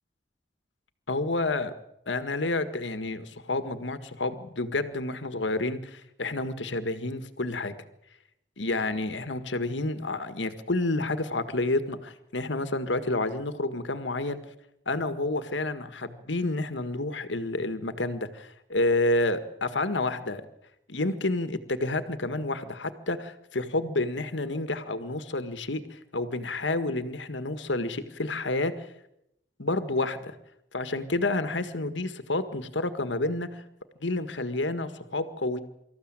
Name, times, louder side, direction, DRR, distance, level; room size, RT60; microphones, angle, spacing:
voice 1, 1.1-1.7 2.1-7.7 8.6-14.4 14.9-20.4 20.9-28.9 29.6-30.4 30.7-33.6 34.0-35.6, left 2 dB, 80° left, 11 dB, 1.7 m, -29 dB
25.5 x 14.0 x 8.9 m, 0.80 s
head